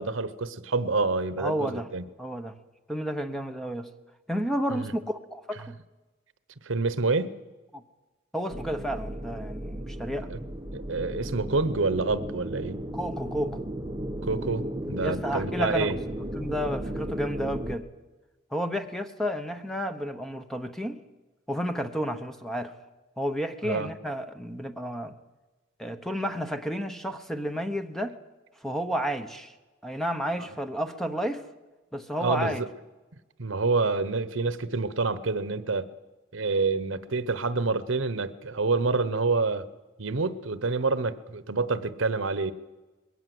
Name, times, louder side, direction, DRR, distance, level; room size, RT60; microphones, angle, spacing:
voice 1, 0.0-2.0 4.7-4.9 6.6-7.3 10.3-10.4 10.7-12.8 14.2-16.0 23.6-23.9 32.2-32.7 33.4-35.9 36.3-39.6 40.0-42.5, right 3 dB, 75° right, 15 dB, 1.0 m, -27 dB
voice 2, 1.4-1.9 2.2-2.5 2.9-3.9 4.3-5.8 7.7-7.8 8.3-10.3 12.9-13.6 15.0-16.0 16.3-17.9 18.5-21.0 21.5-22.7 23.2-25.1 25.8-28.2 28.6-29.5 29.8-31.5 31.9-32.6, equal, ahead, 7 dB, 1.0 m, -31 dB
sound 1, 8.5-17.8, right 1 dB, 20° right, 1.0 m, -35 dB
21.0 x 17.0 x 7.8 m, 1.2 s
head